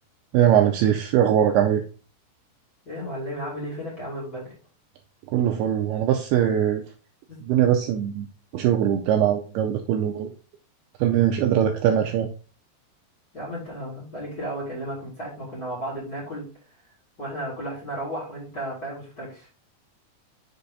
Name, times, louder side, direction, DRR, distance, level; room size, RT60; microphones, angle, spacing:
voice 1, 0.3-1.8 5.3-6.8 7.4-8.3 8.5-10.3 11.0-12.3, right 10 dB, 90° right, 5 dB, 2.2 m, -21 dB
voice 2, 2.9-4.5 7.3-7.4 13.3-16.5 17.2-19.5, right 1 dB, 25° left, -7 dB, 2.6 m, -34 dB
6.6 x 4.0 x 3.6 m, 0.37 s
omnidirectional pair, 5.1 m